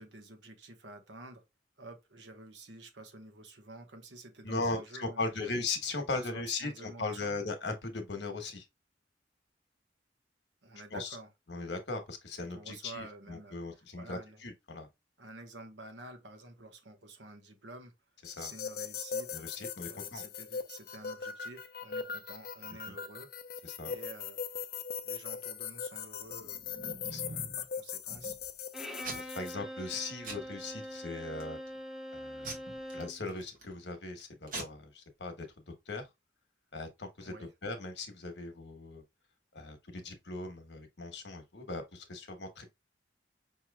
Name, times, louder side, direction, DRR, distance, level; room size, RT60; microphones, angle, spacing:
voice 1, 0.0-1.4 1.8-5.5 5.9-7.4 10.6-11.3 12.5-14.4 15.2-17.9 18.4-19.4 19.8-23.3 23.8-24.4 25.0-26.6 27.3-28.3 37.2-37.5, right 2 dB, 80° right, 1.1 m, -50 dB
voice 2, 4.4-8.6 10.9-11.2 11.5-14.9 18.2-18.5 19.3-20.2 22.9-23.0 23.6-23.9 27.1-27.4 29.1-31.6 32.1-32.6 32.9-35.5 35.9-36.0 36.7-37.3 37.6-39.0 39.5-42.7, left 3 dB, 75° left, 1.1 m, -38 dB
sound 1, 18.2-29.5, left 6 dB, 55° left, 0.5 m, -40 dB
Packing tape duct tape / Tearing, 26.3-27.6 28.1-28.6 29.0-29.5 29.8-30.0 30.2-30.9 31.4-31.8 32.4-33.7 34.2-34.3 34.5-34.6, right 2 dB, 45° right, 1.4 m, -44 dB
Bowed string instrument, 28.7-33.2, equal, ahead, 0.5 m, -43 dB
5.5 x 3.1 x 2.2 m
head